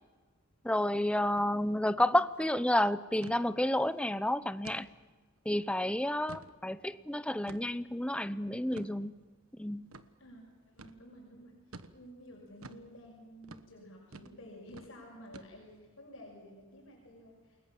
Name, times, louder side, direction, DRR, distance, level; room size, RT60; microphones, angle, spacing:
voice 1, 0.6-4.9 5.4-9.2 9.6-9.9, left 1 dB, 5° left, 14 dB, 0.7 m, -30 dB
sound 1, 1.3-1.5 1.8-1.9 2.2-2.5 3.2-3.4 3.9-4.0 4.6-4.9 5.4-5.5 6.0-6.6 7.5-7.8 8.7-8.9 9.9-10.1 10.8-11.0 11.7-12.0 12.6-12.9 13.4-13.7 14.1-14.4 14.7-14.9 15.3-15.8, right 3 dB, 90° right, 1.3 m, -49 dB
voice 2, 10.2-17.6, equal, 70° left, 0 dB, 6.1 m, -52 dB
29.0 x 20.5 x 7.4 m, 1.4 s
head